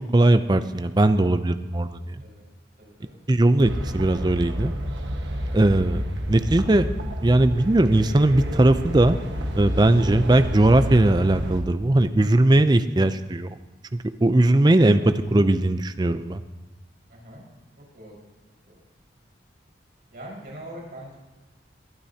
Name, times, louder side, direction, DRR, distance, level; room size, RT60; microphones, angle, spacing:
voice 1, 0.0-2.2 3.3-4.7 5.5-6.0 6.3-6.9 7.2-9.2 9.6-13.6 13.9-16.4, right 1 dB, 20° right, 10 dB, 0.5 m, -19 dB
voice 2, 2.8-3.2 14.9-15.1 17.1-17.4 17.9-18.2 18.6-18.8 20.1-21.2, right 1 dB, 55° right, -3 dB, 5.0 m, -42 dB
sound 1, 3.6-11.6, equal, 75° right, 1.4 m, -30 dB
21.5 x 12.0 x 2.8 m, 1.1 s
head